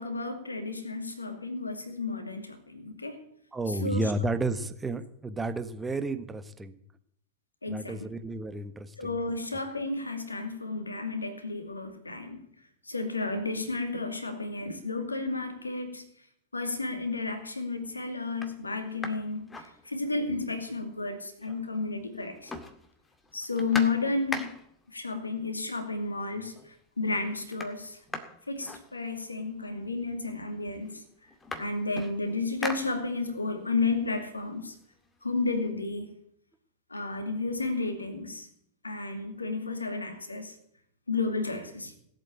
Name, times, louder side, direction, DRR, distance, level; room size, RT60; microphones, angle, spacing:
voice 1, 0.0-3.2 3.8-4.1 7.6-8.1 9.0-12.5 12.9-16.0 16.5-22.5 23.3-24.5 24.9-28.0 28.5-31.0 31.6-34.7 35.2-36.1 36.9-38.5 38.8-40.5 41.1-41.9, left 3 dB, 80° left, 7 dB, 2.4 m, -32 dB
voice 2, 3.5-6.8 7.7-9.2, right 2 dB, 10° right, 11 dB, 1.3 m, -32 dB
sound 1, 16.9-17.3 17.8-17.9 18.3-20.4 20.7-20.8 21.0-21.9 22.1-24.9 25.8-25.9 26.3-26.8 27.0-29.5 30.3-30.4 30.7-33.5 33.9-35.6, left 3 dB, 15° left, 2.1 m, -41 dB
18.5 x 8.3 x 8.4 m, 0.71 s
figure-of-eight pair, 90°, 0 cm